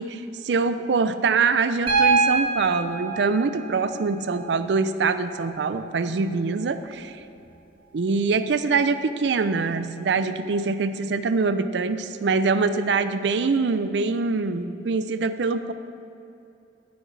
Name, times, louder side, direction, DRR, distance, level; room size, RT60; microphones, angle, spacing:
voice 1, 0.0-7.1 7.9-15.7, right 4 dB, 80° right, 11 dB, 0.4 m, -24 dB
Piano, 1.9-5.9 7.4-7.5, right 4 dB, 30° right, 1.5 m, -26 dB
11.0 x 9.4 x 3.3 m, 2.7 s
head